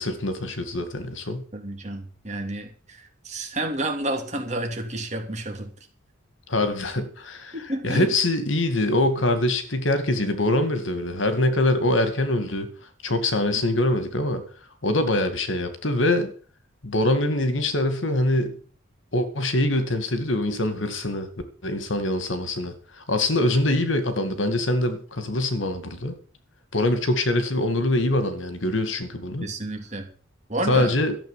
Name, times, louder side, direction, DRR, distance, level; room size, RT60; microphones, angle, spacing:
voice 1, 0.0-1.4 6.5-12.7 13.0-14.4 14.8-16.3 16.8-18.6 19.1-21.3 21.6-26.1 26.7-29.5 30.7-31.2, left 1 dB, 70° left, 2.2 m, -24 dB
voice 2, 1.5-5.7 7.5-8.1 29.4-30.1 30.5-30.9, right 1 dB, 35° right, 2.9 m, -30 dB
13.5 x 7.4 x 7.5 m
head